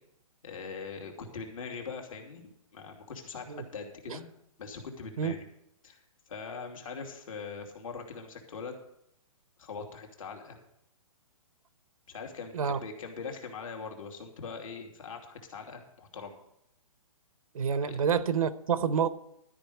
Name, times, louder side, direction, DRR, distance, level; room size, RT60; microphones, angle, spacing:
voice 1, 0.4-4.3 4.6-5.4 5.8-6.0 6.3-8.8 9.6-10.6 12.1-16.3 17.8-18.0, left 5 dB, 70° left, 2 dB, 2.7 m, -42 dB
voice 2, 17.5-19.1, right 7 dB, 75° right, 14 dB, 0.9 m, -28 dB
13.0 x 5.2 x 8.4 m, 0.78 s
hypercardioid pair, 165°, 18 cm